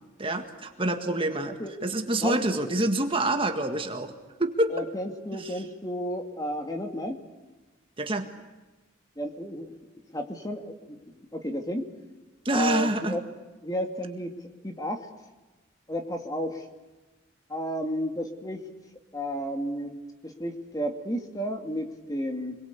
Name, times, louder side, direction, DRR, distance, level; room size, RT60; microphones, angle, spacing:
voice 1, 0.2-4.1 4.4-4.7 5.3-5.6 8.0-8.3 12.4-13.2, right 1 dB, 25° right, 5 dB, 1.8 m, -27 dB
voice 2, 2.2-2.7 4.7-7.2 9.2-9.7 10.1-11.0 11.3-11.8 12.5-13.2 13.6-14.3 14.6-15.1 15.9-16.6 17.5-18.6 19.1-19.9 20.2-22.6, equal, 20° left, 5 dB, 2.4 m, -32 dB
27.0 x 22.5 x 8.3 m, 1.2 s
head